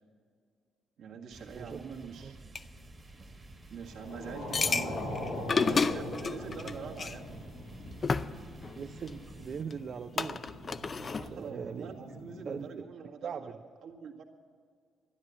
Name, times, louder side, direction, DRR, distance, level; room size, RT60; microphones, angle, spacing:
voice 1, 1.0-2.6 3.7-5.1 5.5-7.4 11.2-14.2, right 6 dB, 75° right, 0 dB, 1.8 m, -44 dB
sound 1, 1.3-9.6, right 2 dB, 30° right, 1.4 m, -52 dB
sound 2, 2.5-2.6 4.5-7.1 7.9-9.1 9.7-9.8 10.2-11.3, left 4 dB, 40° left, 0.5 m, -31 dB
sound 3, 3.9-12.6, left 1 dB, 85° left, 3.2 m, -42 dB
voice 2, 8.7-10.6 10.9-12.9 13.2-13.5, right 6 dB, 50° right, 5 dB, 0.5 m, -41 dB
13.0 x 10.5 x 8.3 m, 2.1 s
cardioid pair, 90°, 0 cm